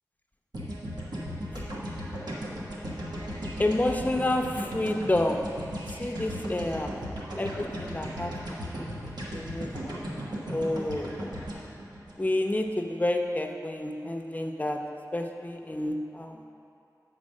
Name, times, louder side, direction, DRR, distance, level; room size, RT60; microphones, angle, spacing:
sound 1, 0.5-12.8, equal, 85° right, 1.2 m, -36 dB
voice 1, 3.6-5.5 5.9-6.9 7.4-10.0 10.5-11.3 12.2-14.8 15.1-16.4, left 1 dB, 25° left, 3 dB, 0.7 m, -30 dB
8.6 x 4.1 x 6.4 m, 2.6 s
wide cardioid pair, 75°, 7 cm